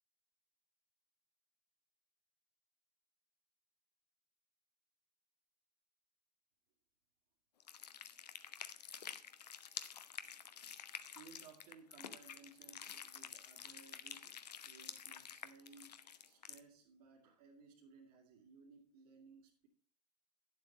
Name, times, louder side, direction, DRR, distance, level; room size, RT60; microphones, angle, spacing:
sound 1, 7.6-16.6, left 8 dB, 85° left, 0.8 m, -50 dB
voice 1, 11.0-19.7, right 5 dB, 60° right, 2.2 m, -61 dB
9.6 x 7.6 x 4.0 m
hypercardioid pair, 100°, 20 cm